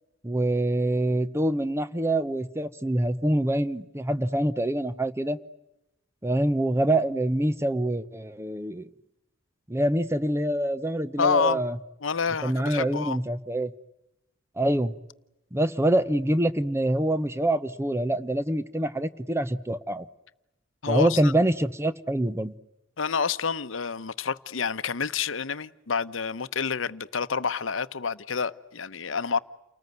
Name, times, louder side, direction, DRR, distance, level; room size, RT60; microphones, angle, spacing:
voice 1, 0.2-5.4 6.2-8.9 9.7-11.8 12.4-13.7 14.6-14.9 15.5-20.0 20.9-22.5, right 1 dB, 15° right, 1.0 m, -25 dB
voice 2, 11.2-11.6 12.0-13.2 20.8-21.3 23.0-29.4, left 5 dB, 75° left, 0.9 m, -28 dB
30.0 x 19.5 x 9.4 m
head